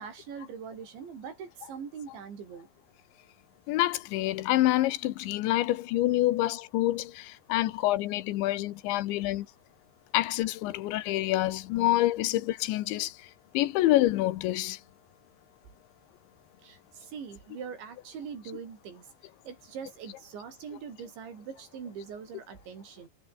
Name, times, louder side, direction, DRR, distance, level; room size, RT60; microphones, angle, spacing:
voice 1, 0.0-2.7 9.2-9.4 16.6-19.1 19.5-23.1, right 7 dB, 85° right, 7.0 m, -42 dB
voice 2, 3.7-9.5 10.1-13.1 13.5-14.8, left 16 dB, 85° left, 3.5 m, -27 dB
omnidirectional pair, 5.1 m